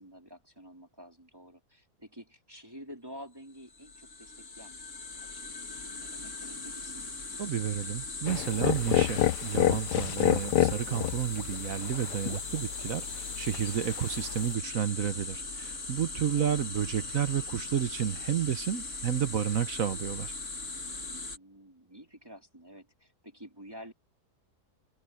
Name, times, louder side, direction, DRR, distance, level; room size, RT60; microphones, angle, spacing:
voice 1, 0.0-4.8 5.1-7.1 16.2-16.6 21.3-23.9, equal, 15° right, 3.5 m, -50 dB
sound 1, 3.6-21.4, left 3 dB, 45° left, 3.0 m, -39 dB
voice 2, 7.4-20.3, right 9 dB, 60° right, 1.3 m, -31 dB
sound 2, 8.3-14.5, left 13 dB, 80° left, 1.2 m, -30 dB
omnidirectional pair, 1.8 m